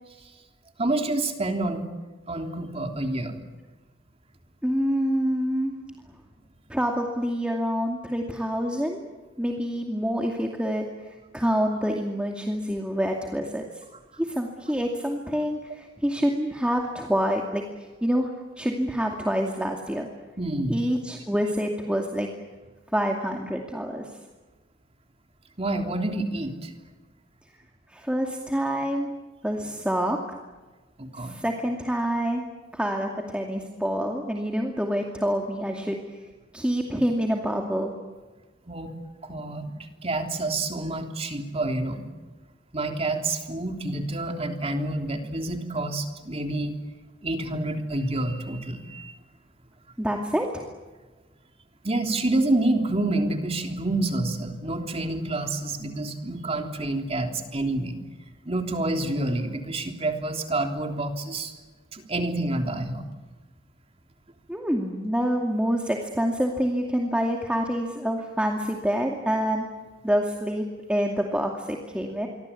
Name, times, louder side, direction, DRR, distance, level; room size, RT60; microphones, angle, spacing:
voice 1, 0.8-1.8 2.3-3.4 20.4-20.8 25.6-26.7 31.0-31.4 38.7-38.9 39.2-39.7 40.0-42.0 42.7-46.7 47.2-49.1 51.8-58.0 58.5-61.5 61.9-63.0, right 2 dB, 35° right, 4 dB, 3.4 m, -28 dB
voice 2, 4.6-5.8 6.7-9.0 9.4-10.9 11.3-13.7 14.2-17.6 18.0-18.3 18.6-20.1 20.7-22.3 22.9-24.1 27.9-29.1 29.4-30.2 31.2-32.4 32.7-36.0 36.5-37.9 50.0-50.6 64.5-69.7 70.0-72.3, equal, 5° right, 1 dB, 2.4 m, -26 dB
27.5 x 24.0 x 8.5 m, 1.3 s
head